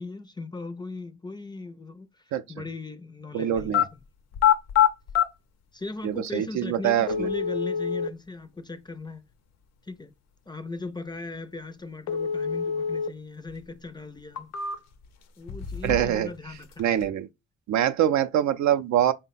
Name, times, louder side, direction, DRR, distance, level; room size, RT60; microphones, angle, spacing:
voice 1, 0.0-3.8 5.7-9.2 9.8-10.1 10.5-14.5 15.4-17.2, left 3 dB, 15° left, 0.4 m, -38 dB
voice 2, 3.3-3.8 6.0-7.3 15.8-16.3 16.8-17.3 17.7-19.1, right 10 dB, 70° right, 0.5 m, -24 dB
sound 1, 3.6-3.9 4.3-5.3 6.3-6.4 7.1-8.1 12.1-13.1 13.5-13.6 14.2-15.1 15.5-16.2 16.5-17.1, left 9 dB, 60° left, 0.6 m, -25 dB
3.8 x 2.1 x 4.0 m
cardioid pair, 90°, 30 cm